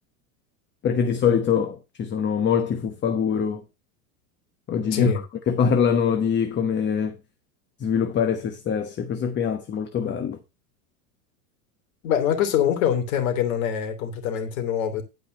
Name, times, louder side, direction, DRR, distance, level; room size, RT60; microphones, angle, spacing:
voice 1, 0.8-3.6 4.7-5.1 5.5-7.2 7.8-10.4, left 7 dB, 25° left, 1.1 m, -23 dB
voice 2, 4.9-5.2 12.0-15.0, left 9 dB, 65° left, 3.2 m, -24 dB
11.5 x 5.2 x 5.2 m
supercardioid pair, 125°, 44 cm